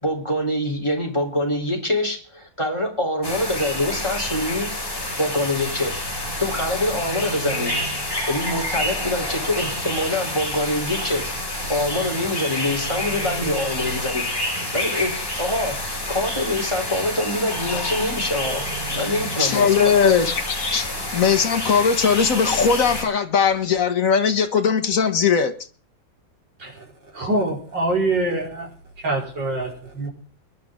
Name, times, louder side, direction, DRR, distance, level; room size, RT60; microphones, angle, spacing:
voice 1, 0.0-4.7 5.2-5.9 6.4-7.7 8.3-11.3 11.7-14.2 14.7-15.1 15.4-15.8 16.1-20.0, left 1 dB, 15° left, 3.8 m, -25 dB
sound 1, 3.2-23.0, left 1 dB, 30° left, 4.6 m, -28 dB
voice 2, 19.4-25.5, left 6 dB, 45° left, 1.8 m, -19 dB
voice 3, 27.1-28.7 29.0-30.1, right 2 dB, 70° right, 5.7 m, -24 dB
23.0 x 11.0 x 3.8 m
omnidirectional pair, 2.0 m